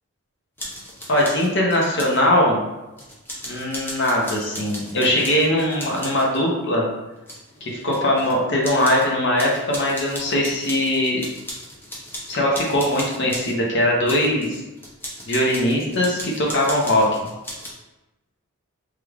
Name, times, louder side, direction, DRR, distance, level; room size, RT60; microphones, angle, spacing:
sound 1, 0.6-2.2 3.0-6.4 7.2-8.3 8.6-9.1 9.4-13.6 14.1-17.7, equal, 10° left, 0.4 m, -36 dB
voice 1, 1.1-2.6 3.5-6.9 7.6-11.2 12.3-14.6 15.3-17.3, left 1 dB, 50° left, -2 dB, 0.7 m, -21 dB
3.3 x 3.2 x 2.3 m, 1.0 s
head